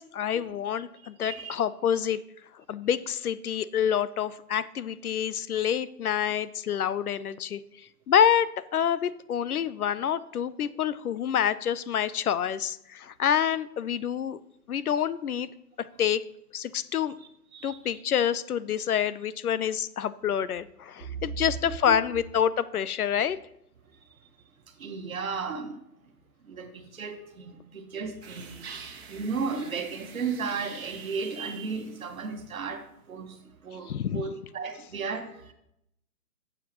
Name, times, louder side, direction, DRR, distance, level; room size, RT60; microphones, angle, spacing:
voice 1, 0.0-2.2 2.7-7.6 8.1-14.4 14.7-15.5 16.0-16.2 16.5-17.2 17.6-23.4 33.9-34.2, left 9 dB, 65° left, 17 dB, 0.6 m, -27 dB
voice 2, 1.0-1.5 17.5-18.0 21.0-21.4 21.7-22.0 24.8-25.8 26.4-35.5, right 5 dB, 60° right, 6 dB, 1.3 m, -35 dB
sound 1, 28.2-32.6, right 5 dB, 40° right, 1.3 m, -47 dB
12.5 x 7.5 x 3.0 m, 0.80 s
hypercardioid pair, 160°, 48 cm